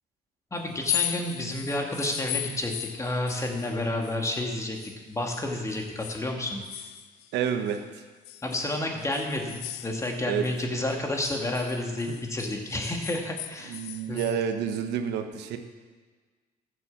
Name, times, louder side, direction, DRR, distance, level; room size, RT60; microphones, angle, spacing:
voice 1, 0.5-6.6 8.4-13.8 14.1-14.2, left 1 dB, 15° left, 2 dB, 2.0 m, -30 dB
sound 1, 0.7-5.0 5.3-7.8 8.2-10.6 10.9-14.4, left 14 dB, 90° left, 0.5 m, -37 dB
voice 2, 7.3-7.8 10.2-10.4 13.7-15.6, right 8 dB, 85° right, 6 dB, 1.1 m, -29 dB
13.5 x 6.9 x 7.1 m, 1.4 s
cardioid pair, 110°, 17 cm